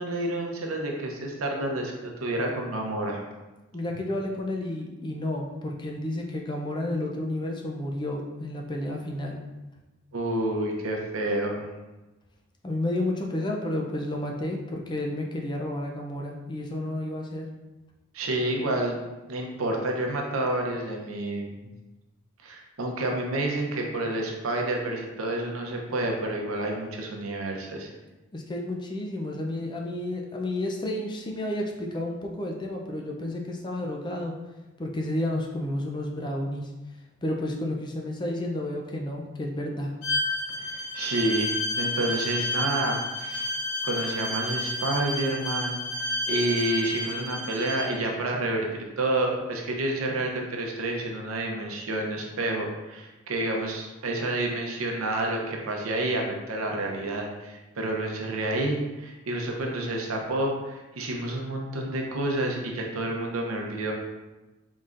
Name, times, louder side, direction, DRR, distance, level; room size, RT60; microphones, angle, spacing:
voice 1, 0.0-3.3 10.1-11.7 18.1-19.0 19.3-21.5 22.4-27.9 40.6-43.5 43.8-63.9, right 1 dB, 80° right, 1 dB, 0.7 m, -29 dB
voice 2, 3.7-9.4 12.6-17.5 28.3-34.3 34.8-36.7 37.2-39.9, left 1 dB, 20° left, 0 dB, 0.4 m, -31 dB
Bowed string instrument, 40.0-47.9, left 1 dB, 70° left, 1.0 m, -30 dB
4.0 x 3.6 x 2.5 m, 1.1 s
head